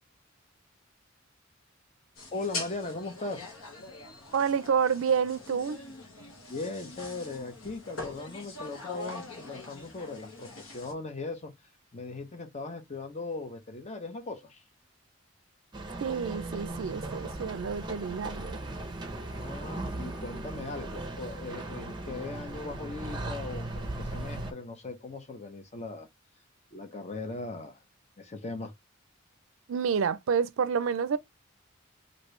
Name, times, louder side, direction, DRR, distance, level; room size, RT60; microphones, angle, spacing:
sound 1, 2.2-10.9, left 3 dB, 85° left, 1.2 m, -43 dB
voice 1, 2.3-3.5 6.5-11.5 11.9-14.6 19.2-26.1 26.7-27.8 28.2-28.7, left 3 dB, 35° left, 0.7 m, -39 dB
voice 2, 4.3-5.8 16.0-18.6 29.7-31.2, right 6 dB, 75° right, 0.4 m, -28 dB
sound 2, 15.7-24.5, right 2 dB, 20° right, 0.6 m, -37 dB
3.0 x 2.7 x 3.0 m
head